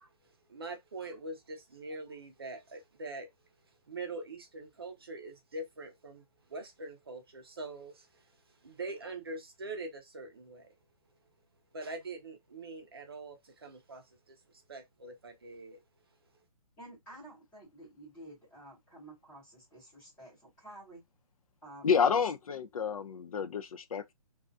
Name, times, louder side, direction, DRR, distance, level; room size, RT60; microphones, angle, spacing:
voice 1, 0.0-3.3 3.9-6.2 6.5-8.3 8.6-10.8 11.7-15.8, right 2 dB, 40° right, 0.5 m, -43 dB
voice 2, 16.8-21.0 21.6-22.3, right 1 dB, 5° left, 0.8 m, -51 dB
voice 3, 21.8-24.1, left 6 dB, 70° left, 0.4 m, -29 dB
2.3 x 2.2 x 2.5 m
hypercardioid pair, 180°, 19 cm